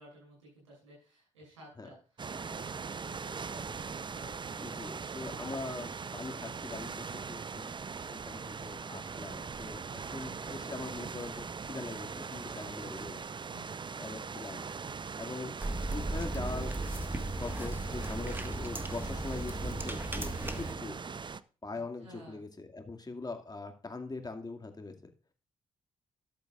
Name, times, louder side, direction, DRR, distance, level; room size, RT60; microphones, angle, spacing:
voice 1, 0.0-4.9 5.4-5.7 13.5-14.0 20.6-20.9 21.7-22.4, right 1 dB, 90° right, -2 dB, 6.5 m, -54 dB
sound 1, 2.2-21.4, right 5 dB, 30° right, 0.6 m, -41 dB
voice 2, 4.6-7.7 8.1-13.2 14.0-14.6 15.2-15.6 15.9-16.7 17.4-21.0 21.6-24.9, left 3 dB, 25° left, 5 dB, 2.2 m, -42 dB
sound 2, 15.6-20.7, right 2 dB, 15° right, 1.6 m, -36 dB
13.0 x 11.5 x 2.5 m, 0.38 s
hypercardioid pair, 40°, 15 cm